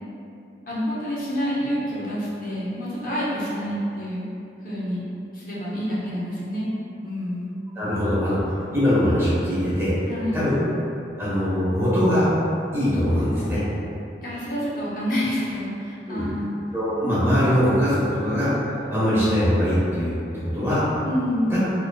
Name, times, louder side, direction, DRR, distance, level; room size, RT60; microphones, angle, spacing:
voice 1, 0.7-4.2 4.6-5.0 5.3-6.7 7.0-7.5 10.1-10.4 14.2-16.5 21.0-21.6, equal, 50° left, -9 dB, 0.8 m, -28 dB
voice 2, 7.7-9.9 10.3-10.6 11.2-12.3 12.7-13.6 16.1-16.2 16.7-18.5 18.9-20.2 20.4-20.8 21.5-21.6, equal, 15° right, -11 dB, 1.0 m, -22 dB
3.9 x 2.9 x 2.3 m, 2.7 s
head